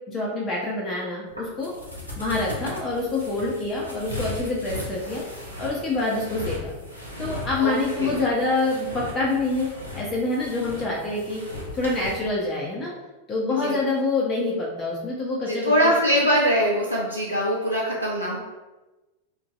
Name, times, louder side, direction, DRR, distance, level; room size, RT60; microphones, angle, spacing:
voice 1, 0.1-1.7 2.2-5.2 5.6-6.7 7.2-9.7 9.9-11.4 11.7-12.9 13.3-15.9, left 2 dB, 20° left, -4 dB, 0.5 m, -26 dB
sound 1, 1.3-12.1, left 2 dB, 90° right, 0.7 m, -37 dB
voice 2, 7.6-8.1 13.5-13.8 15.5-18.4, equal, 85° left, -4 dB, 0.4 m, -22 dB
2.9 x 2.5 x 2.4 m, 1.1 s
figure-of-eight pair, 90°, 0 cm